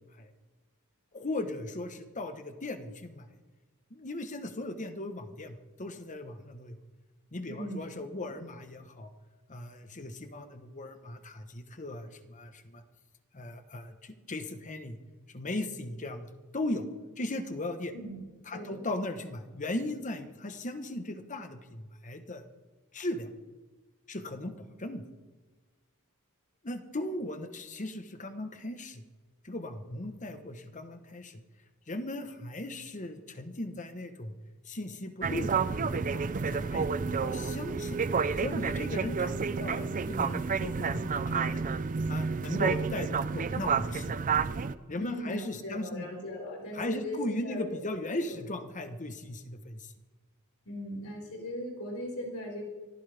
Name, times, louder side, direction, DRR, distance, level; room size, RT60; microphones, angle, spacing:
voice 1, 1.1-3.3 3.9-6.8 7.3-9.1 9.5-12.8 13.3-15.0 15.3-16.9 17.2-17.9 18.5-22.4 22.9-23.3 24.1-25.0 26.6-29.0 29.4-31.4 31.9-34.3 34.6-41.6 42.1-44.2 44.9-46.1 46.7-49.9, left 1 dB, 35° left, 8 dB, 1.2 m, -37 dB
voice 2, 7.5-8.3 17.9-18.2 18.5-18.9 45.0-47.8 48.1-48.4 50.6-52.6, equal, 80° left, -2 dB, 5.1 m, -39 dB
sound 1, 35.2-44.7, right 5 dB, 35° right, 0.5 m, -30 dB
24.5 x 14.5 x 3.5 m, 1.3 s
head